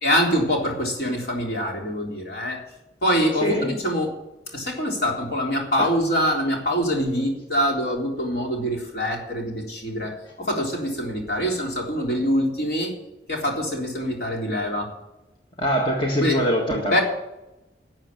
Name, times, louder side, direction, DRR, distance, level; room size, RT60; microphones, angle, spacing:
voice 1, 0.0-2.6 3.0-4.1 4.5-13.0 13.3-14.9 16.2-16.4 16.9-17.0, equal, 65° left, -1 dB, 3.6 m, -24 dB
voice 2, 15.6-17.0, equal, 30° left, 0 dB, 1.8 m, -23 dB
12.5 x 7.4 x 8.5 m, 0.93 s
head